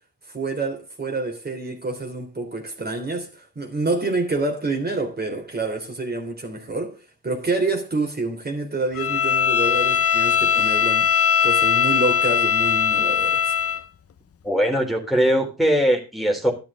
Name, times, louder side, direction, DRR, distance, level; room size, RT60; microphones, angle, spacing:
voice 1, 0.3-7.0 7.2-11.1 11.4-13.5, right 3 dB, 30° right, 3.4 m, -27 dB
Bowed string instrument, 9.0-13.8, left 8 dB, 45° left, 1.0 m, -20 dB
voice 2, 14.4-16.5, equal, ahead, 3.5 m, -20 dB
12.0 x 12.0 x 3.7 m
cardioid pair, 105°, 33 cm